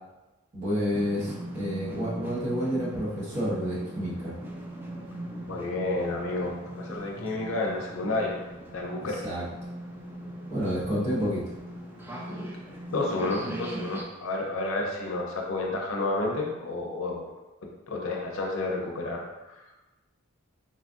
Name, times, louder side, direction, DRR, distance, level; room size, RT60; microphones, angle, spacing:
voice 1, 0.5-4.3 9.0-9.4 10.5-11.5, equal, 35° right, -8 dB, 1.1 m, -29 dB
sound 1, 0.9-14.0, right 1 dB, 10° right, 0.3 m, -39 dB
voice 2, 5.5-8.4 8.7-9.2 12.9-17.3 17.9-19.7, left 2 dB, 70° left, 0 dB, 0.6 m, -30 dB
3.8 x 2.4 x 2.5 m, 1.1 s
head